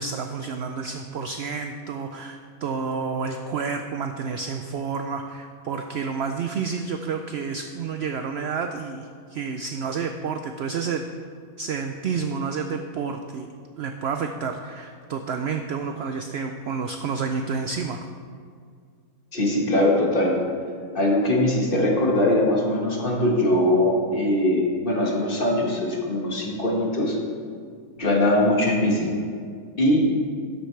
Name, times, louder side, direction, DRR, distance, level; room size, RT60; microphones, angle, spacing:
voice 1, 0.0-11.0 11.6-13.5 13.8-18.1, right 5 dB, 80° right, 6 dB, 0.5 m, -30 dB
voice 2, 19.3-20.4 20.9-27.2 28.0-29.1 29.8-30.1, left 1 dB, 35° left, -2 dB, 1.5 m, -21 dB
12.0 x 8.1 x 3.3 m, 2.1 s
omnidirectional pair, 1.6 m